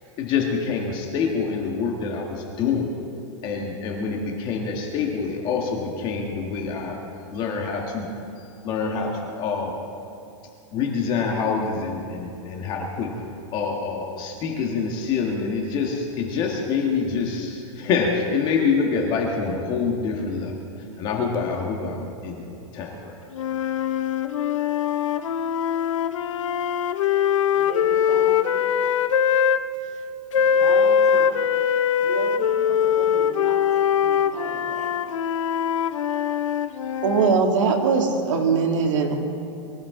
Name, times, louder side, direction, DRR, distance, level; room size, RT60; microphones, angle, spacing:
voice 1, 0.2-2.9 3.4-7.0 7.3-8.1 8.6-9.8 10.7-13.2 13.5-20.6 21.0-23.1, left 5 dB, 30° left, 0 dB, 1.6 m, -26 dB
sound 1, 23.4-29.6 30.3-37.4, left 8 dB, 90° left, 0.8 m, -22 dB
voice 2, 27.5-28.8 30.3-31.6 32.0-34.9, equal, ahead, -6 dB, 5.1 m, -37 dB
voice 3, 37.0-39.1, right 5 dB, 75° right, 2 dB, 2.4 m, -20 dB
23.5 x 15.5 x 3.8 m, 2.7 s
supercardioid pair, 165°, 16 cm